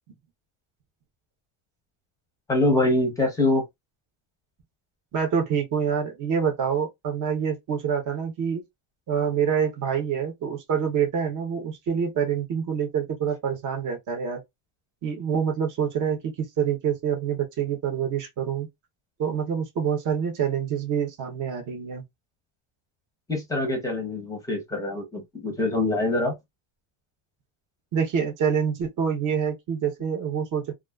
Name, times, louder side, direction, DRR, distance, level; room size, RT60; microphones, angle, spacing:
voice 1, 2.5-3.6 23.3-26.4, left 2 dB, 5° left, 0.7 m, -24 dB
voice 2, 5.1-8.6 9.1-14.4 15.0-18.7 19.2-22.0 27.9-30.7, right 7 dB, 40° right, 0.8 m, -26 dB
2.4 x 2.3 x 2.3 m
cardioid pair, 150°, 50 cm